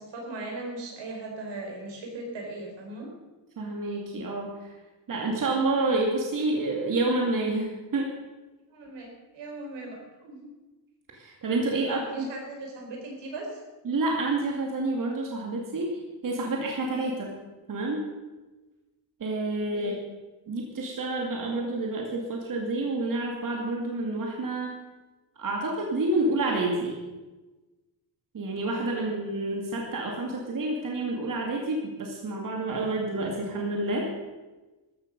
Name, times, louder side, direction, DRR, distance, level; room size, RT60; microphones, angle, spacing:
voice 1, 0.0-3.1 8.7-10.5 11.7-13.6 19.7-20.0 28.9-29.1, right 2 dB, 85° right, 0 dB, 4.9 m, -39 dB
voice 2, 3.6-4.5 5.1-8.1 11.1-12.3 13.9-17.3 17.7-18.1 19.2-20.0 20.5-24.8 25.4-26.9 28.3-34.1, right 2 dB, 50° right, 0 dB, 2.6 m, -29 dB
14.0 x 13.5 x 5.4 m, 1.2 s
cardioid pair, 125°, 42 cm